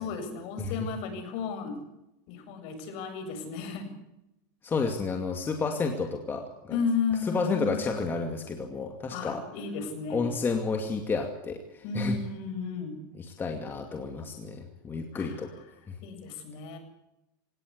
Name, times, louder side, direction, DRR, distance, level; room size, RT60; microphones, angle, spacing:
voice 1, 0.0-1.8 2.3-3.9 6.7-7.8 9.1-10.3 11.8-13.0 15.1-15.4 16.0-16.8, left 5 dB, 55° left, 6 dB, 7.7 m, -33 dB
voice 2, 4.6-6.8 7.2-9.4 10.1-12.2 13.2-15.5 15.9-16.0, left 4 dB, 20° left, 4 dB, 2.5 m, -31 dB
27.0 x 18.5 x 8.2 m, 0.87 s
supercardioid pair, 140°, 11 cm